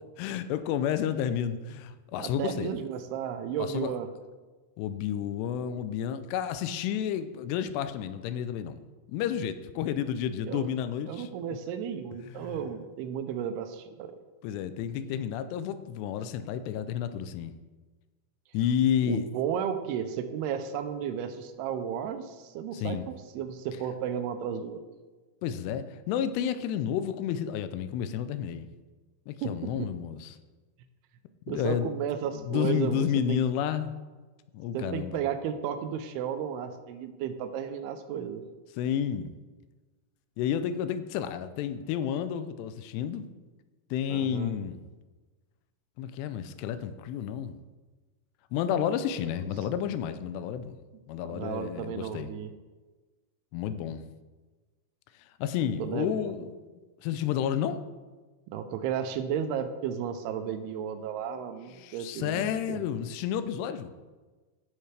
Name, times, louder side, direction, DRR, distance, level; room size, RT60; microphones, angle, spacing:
voice 1, 0.2-2.7 3.6-3.9 4.8-8.8 9.1-11.3 12.3-12.5 14.4-17.5 18.5-19.3 22.7-23.1 25.4-28.7 29.3-30.4 31.5-31.9 32.3-33.9 34.5-35.2 38.8-39.3 40.4-43.3 43.9-44.9 46.0-47.6 48.5-50.8 51.1-52.3 53.5-54.0 55.2-56.5 57.0-57.8 61.8-63.9, left 9 dB, 90° left, 11 dB, 2.7 m, -31 dB
voice 2, 2.2-4.1 10.4-10.7 11.1-14.2 19.0-24.8 29.4-29.9 31.5-33.4 34.7-38.4 44.1-44.5 51.3-52.5 55.8-56.3 58.5-62.8, right 8 dB, 80° right, 8 dB, 2.5 m, -33 dB
15.5 x 5.7 x 3.3 m, 1.3 s
omnidirectional pair, 4.7 m